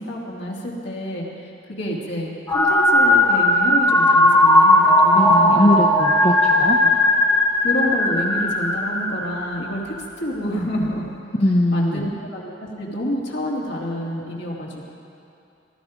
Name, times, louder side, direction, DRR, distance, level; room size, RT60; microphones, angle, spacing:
voice 1, 0.0-5.9 6.6-6.9 7.6-11.1 11.7-14.9, equal, 65° left, -3 dB, 2.6 m, -28 dB
sound 1, 2.5-9.8, left 1 dB, 15° left, 1.5 m, -17 dB
voice 2, 5.1-6.8 11.4-12.1, left 1 dB, 35° left, 0 dB, 0.7 m, -20 dB
18.0 x 13.0 x 5.1 m, 2.6 s
head